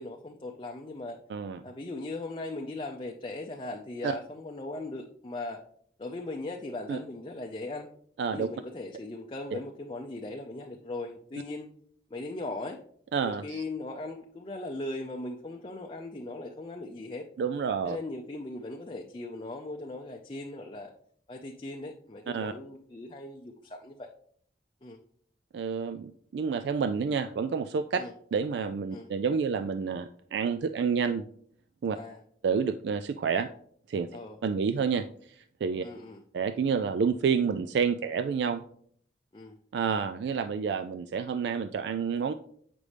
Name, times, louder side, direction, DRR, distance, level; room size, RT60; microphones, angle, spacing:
voice 1, 0.0-1.2 1.6-5.6 6.0-7.9 8.3-11.7 12.1-12.8 13.2-17.3 17.8-20.9 21.3-24.1 24.8-25.0 27.9-28.1 28.9-29.1 31.9-32.2 34.1-34.4 35.8-36.2 39.3-39.6, left 2 dB, 30° left, 2 dB, 0.5 m, -39 dB
voice 2, 13.1-13.6 17.4-18.0 22.3-22.5 25.5-28.0 28.3-31.2 31.8-32.0 32.4-33.5 33.9-34.1 34.4-35.1 35.6-35.8 36.3-38.6 39.7-42.3, right 6 dB, 75° right, 10 dB, 0.3 m, -29 dB
8.5 x 5.2 x 3.3 m, 0.62 s
head